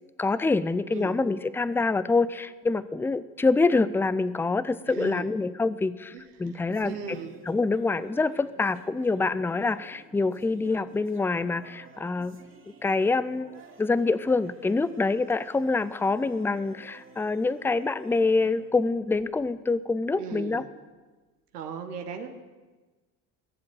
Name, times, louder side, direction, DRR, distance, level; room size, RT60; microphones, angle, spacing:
voice 1, 0.2-7.2 7.5-12.4 12.8-20.6, left 3 dB, 5° left, 16 dB, 0.5 m, -26 dB
voice 2, 4.9-5.3 6.1-6.2 6.8-7.4 20.1-20.7 21.5-22.3, right 6 dB, 90° right, 4 dB, 1.3 m, -37 dB
sound 1, 6.2-19.6, right 4 dB, 25° right, 2.2 m, -52 dB
17.5 x 7.5 x 7.9 m, 1.3 s
hypercardioid pair, 65°, 46 cm